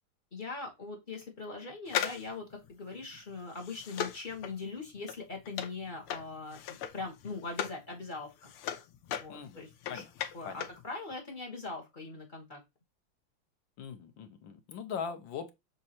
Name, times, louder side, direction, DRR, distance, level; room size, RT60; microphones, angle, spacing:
voice 1, 0.3-8.5 9.2-10.0 10.3-12.6, left 3 dB, 35° left, 0.8 m, -41 dB
sound 1, 1.9-7.8 8.2-10.8 11.1-11.2, left 9 dB, 90° left, 1.6 m, -38 dB
voice 2, 9.3-10.1 10.4-10.6 13.8-15.5, left 6 dB, 65° left, 1.4 m, -41 dB
6.5 x 2.7 x 2.8 m
omnidirectional pair, 2.4 m